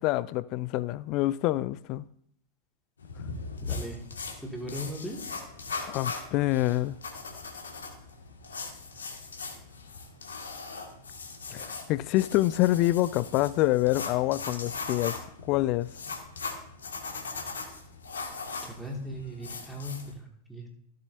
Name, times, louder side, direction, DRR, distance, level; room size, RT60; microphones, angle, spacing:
voice 1, 0.0-2.0 5.9-7.0 11.5-15.2 15.5-15.9, left 16 dB, 40° left, 0.3 m, -26 dB
sound 1, 3.0-20.1, left 4 dB, 70° left, 2.2 m, -39 dB
voice 2, 3.6-4.0 4.4-5.2 18.6-20.7, equal, ahead, 2.4 m, -38 dB
15.5 x 7.7 x 2.8 m
figure-of-eight pair, 90°, 0 cm